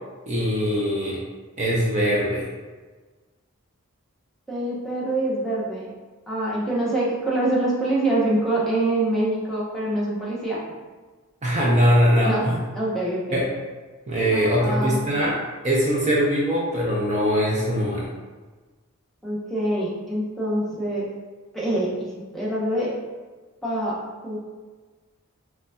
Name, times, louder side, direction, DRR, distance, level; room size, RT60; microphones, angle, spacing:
voice 1, 0.3-1.2 1.6-2.5 11.4-12.6 13.3-13.4 14.1-15.4 15.6-18.1, equal, 30° right, -4 dB, 0.5 m, -21 dB
voice 2, 4.5-5.9 6.3-10.6 12.2-12.5 12.7-13.4 14.6-15.0 19.2-21.1 21.5-23.0 23.6-24.0 24.2-24.4, right 1 dB, ahead, -8 dB, 0.7 m, -25 dB
3.9 x 3.2 x 2.2 m, 1.3 s
head